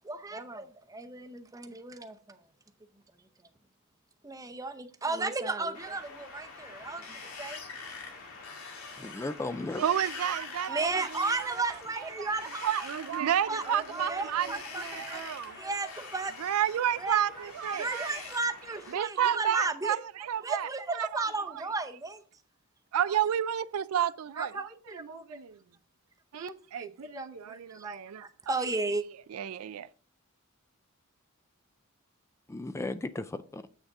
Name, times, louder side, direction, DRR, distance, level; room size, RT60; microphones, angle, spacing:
voice 1, 0.0-2.4 4.2-7.6 10.7-12.7 13.5-16.3 17.0-17.2 17.7-20.0 20.4-22.2 24.0-24.1 24.4-25.4 26.3-29.0, right 3 dB, 15° right, 0.6 m, -34 dB
Wind, 5.7-18.9, left 4 dB, 90° left, 2.1 m, -45 dB
voice 2, 9.0-9.9 32.5-33.7, left 2 dB, 15° left, 0.3 m, -35 dB
voice 3, 9.8-11.5 12.2-12.3 12.6-15.6 16.4-18.1 18.9-21.2 22.9-25.6 26.3-28.6 29.3-29.9, right 9 dB, 80° right, 0.4 m, -31 dB
7.9 x 6.4 x 3.5 m
head